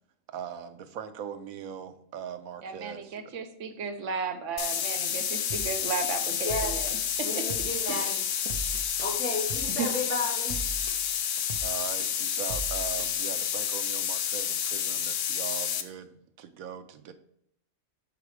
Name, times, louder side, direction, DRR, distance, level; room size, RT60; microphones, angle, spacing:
voice 1, 0.3-3.2 11.4-17.1, right 8 dB, 90° right, 10 dB, 1.1 m, -40 dB
voice 2, 2.6-7.4 7.9-8.2 9.8-9.9, right 5 dB, 65° right, 7 dB, 1.0 m, -35 dB
sound 1, 4.6-15.8, left 9 dB, 65° left, 0.9 m, -30 dB
sound 2, 5.5-5.7 6.0-7.0 7.5-7.7 8.0-9.1 9.5-9.7 10.0-11.0 11.5-11.7 12.0-13.1, right 3 dB, 40° right, 0.6 m, -39 dB
voice 3, 6.4-6.7 7.2-8.2 9.0-10.6, left 2 dB, 10° right, -8 dB, 3.0 m, -33 dB
6.0 x 5.0 x 4.8 m, 0.73 s
omnidirectional pair, 1.4 m